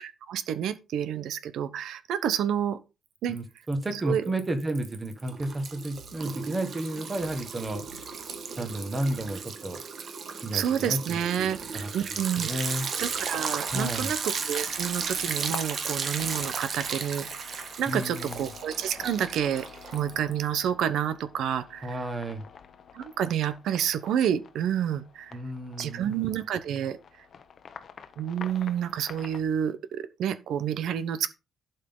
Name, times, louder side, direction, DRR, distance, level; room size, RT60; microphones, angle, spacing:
voice 1, 0.0-2.8 3.2-3.4 3.9-4.2 10.5-12.5 13.0-19.7 19.9-22.0 22.9-25.4 25.8-27.0 28.2-31.3, right 9 dB, 75° right, 0.9 m, -29 dB
voice 2, 3.3-7.8 8.6-9.8 10.4-12.9 13.7-14.1 17.9-18.4 21.8-22.4 25.3-26.3, right 1 dB, 20° right, 1.7 m, -32 dB
Liquid, 3.4-4.0 4.3-20.5, right 6 dB, 45° right, 1.5 m, -35 dB
sound 1, 13.1-29.4, left 7 dB, 45° left, 0.9 m, -48 dB
11.5 x 5.6 x 3.9 m
cardioid pair, 160°, 0 cm